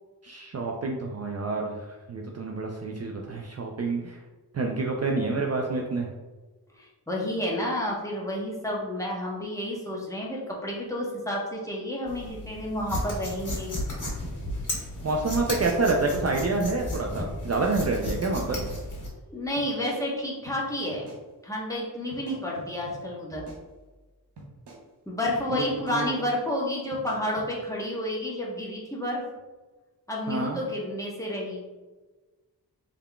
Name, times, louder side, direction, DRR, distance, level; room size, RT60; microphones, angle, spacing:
voice 1, 0.2-1.8 2.1-4.2 4.5-6.1 15.0-18.6 25.5-25.6 25.9-26.1 30.3-30.6, right 3 dB, 40° right, 0 dB, 0.4 m, -28 dB
voice 2, 6.8-13.8 19.3-21.1 21.4-23.5 25.1-29.2 30.1-31.6, left 1 dB, 10° left, -4 dB, 0.9 m, -30 dB
sound 1, 12.1-19.1, left 1 dB, 50° left, 1.5 m, -34 dB
sound 2, 18.1-18.2 18.5-19.3 19.6-20.0 20.5-20.6 20.9-21.2 22.1-23.0 23.3-24.0 24.4-24.8 25.3-25.4 25.7-26.0 26.9-27.5, right 1 dB, 80° right, 0.9 m, -46 dB
3.7 x 3.4 x 2.2 m, 1.2 s
wide cardioid pair, 65°, 40 cm